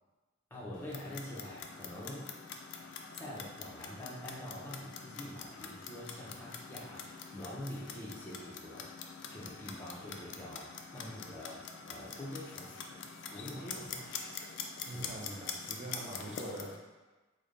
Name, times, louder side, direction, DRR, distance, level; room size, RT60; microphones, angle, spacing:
voice 1, 0.5-2.3 3.1-9.0 9.3-13.0 13.3-14.2 14.9-15.2 16.2-16.4, left 1 dB, 10° left, -6 dB, 0.7 m, -45 dB
Clock, 0.7-16.8, left 6 dB, 60° left, 0.3 m, -45 dB
voice 2, 13.6-14.0 14.9-16.8, right 1 dB, 30° right, -2 dB, 0.4 m, -44 dB
3.4 x 2.1 x 3.7 m, 1.2 s
head